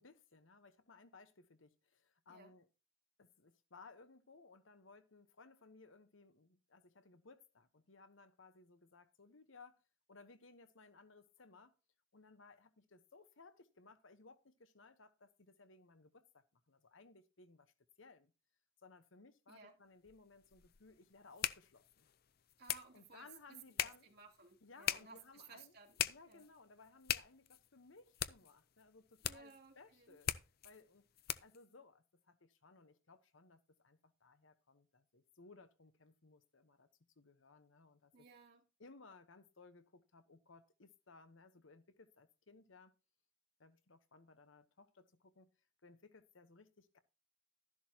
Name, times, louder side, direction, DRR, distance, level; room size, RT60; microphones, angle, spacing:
voice 1, 0.0-2.7 3.2-9.8 10.1-11.8 12.1-17.7 18.0-18.3 18.8-22.1 22.9-24.1 24.6-25.7 26.0-30.3 30.6-31.0 31.4-36.9 37.2-38.3 38.8-42.9 43.6-45.5 45.8-47.0, left 3 dB, 75° left, 1.1 m, -61 dB
sound 1, 20.1-31.7, left 11 dB, 50° left, 0.5 m, -43 dB
voice 2, 22.6-23.3 23.7-26.5 29.2-30.2 38.1-38.6, right 4 dB, 50° right, 2.8 m, -59 dB
12.5 x 11.0 x 2.9 m
head